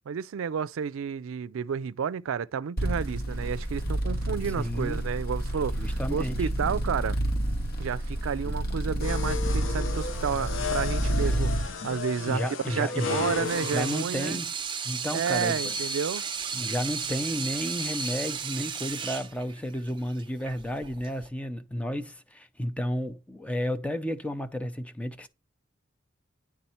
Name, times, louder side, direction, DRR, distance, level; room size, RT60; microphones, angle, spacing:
voice 1, 0.1-7.2 7.8-14.4 15.1-16.3, right 7 dB, 80° right, 0.4 m, -31 dB
sound 1, 2.8-11.7, right 1 dB, 50° left, 1.6 m, -29 dB
voice 2, 4.6-5.0 5.8-6.5 8.5-8.6 12.3-14.5 14.8-15.8 16.5-25.3, equal, 5° left, 0.6 m, -32 dB
sound 2, 9.0-14.0, left 5 dB, 70° left, 0.8 m, -34 dB
Water tap faucet / Sink (filling or washing), 13.2-21.3, right 6 dB, 25° right, 0.7 m, -34 dB
10.0 x 3.6 x 4.3 m
head